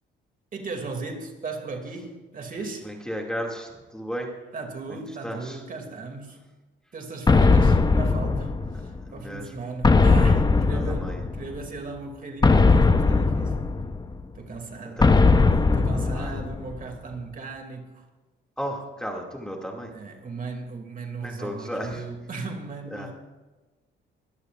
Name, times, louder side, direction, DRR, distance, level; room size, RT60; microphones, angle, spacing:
voice 1, 0.5-2.9 4.5-6.4 6.9-13.8 14.3-15.0 15.7-18.1 19.9-23.1, right 3 dB, 45° right, 3 dB, 2.6 m, -37 dB
voice 2, 2.8-4.3 5.2-5.6 9.0-9.5 10.7-11.2 15.0-15.1 16.1-16.3 18.6-19.9 21.2-22.0 22.9-23.1, equal, 5° left, 0 dB, 2.4 m, -34 dB
sound 1, 7.3-9.0 9.8-11.6 12.4-14.2 15.0-16.8, left 3 dB, 20° left, 0.8 m, -19 dB
22.0 x 13.5 x 2.5 m, 1.2 s
cardioid pair, 90°, 20 cm